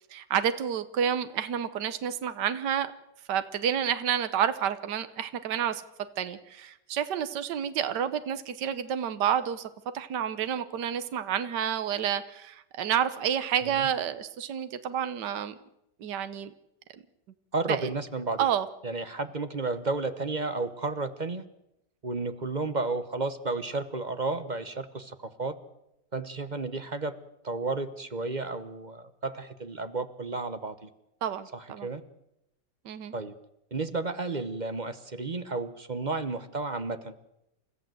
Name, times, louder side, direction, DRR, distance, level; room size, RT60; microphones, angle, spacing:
voice 1, 0.1-2.9 3.3-5.8 6.2-9.7 9.9-15.5 16.0-16.5 17.7-17.9 18.4-18.7 31.2-31.9 32.8-33.1, right 9 dB, 75° right, 11 dB, 1.6 m, -29 dB
voice 2, 17.5-18.5 18.8-21.4 22.0-25.5 26.1-27.1 27.4-30.9 31.5-32.0 33.1-33.3 33.7-37.1, right 3 dB, 30° right, 11 dB, 1.1 m, -32 dB
29.5 x 14.5 x 7.8 m, 0.85 s
omnidirectional pair, 1.9 m